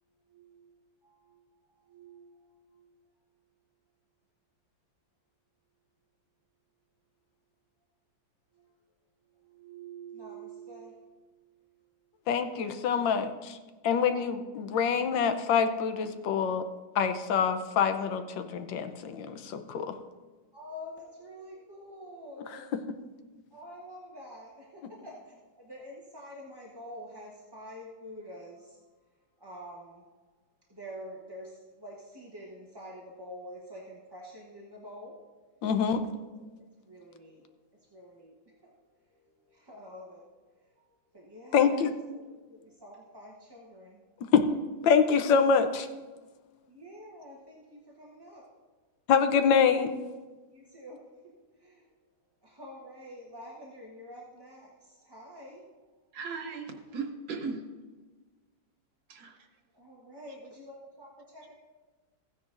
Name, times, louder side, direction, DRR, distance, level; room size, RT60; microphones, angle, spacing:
voice 1, 0.3-0.7 1.3-1.4 1.9-2.4 2.7-2.9 9.4-11.1 14.1-14.4 20.5-22.6 23.5-28.8 29.4-30.0 30.7-31.5 31.8-35.1 36.9-37.5 37.9-38.3 38.6-38.7 39.5-40.2 41.1-41.8 42.1-44.0 46.7-48.4 50.5-51.0 51.6-51.8 52.4-54.7 55.0-55.6 59.8-61.5, equal, 20° right, -4 dB, 0.8 m, -47 dB
voice 2, 12.3-13.6 13.8-16.6 16.9-19.9 22.5-22.8 35.6-36.0 41.5-41.9 44.3-44.6 44.8-45.9 49.1-49.9, left 6 dB, 75° left, 8 dB, 1.4 m, -25 dB
voice 3, 56.1-57.6 59.1-59.5, right 4 dB, 90° right, 3 dB, 1.9 m, -37 dB
15.0 x 9.7 x 2.5 m, 1.3 s
omnidirectional pair, 2.1 m